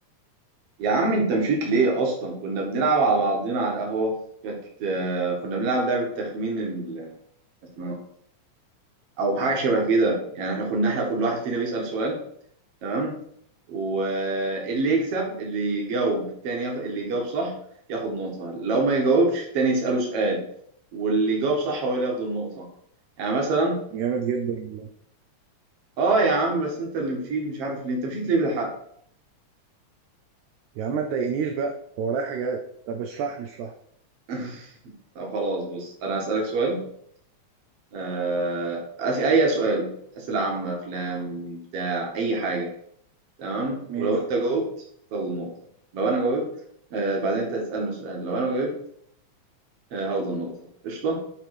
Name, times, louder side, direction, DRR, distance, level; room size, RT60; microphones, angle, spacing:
voice 1, 0.8-4.1 4.4-7.1 7.8-8.0 9.2-12.2 12.8-13.1 13.7-17.5 17.9-20.4 20.9-22.7 23.2-23.8 26.0-28.7 34.3-34.7 35.2-36.8 37.9-42.7 43.4-44.7 45.1-45.5 45.9-46.5 46.9-48.7 49.9-50.5 50.8-51.2, right 3 dB, 55° right, 0 dB, 2.5 m, -25 dB
voice 2, 23.9-24.9 30.8-32.6 32.9-33.7 43.9-44.2, right 6 dB, 75° right, 3 dB, 2.0 m, -28 dB
9.2 x 3.6 x 4.9 m, 0.67 s
omnidirectional pair, 3.5 m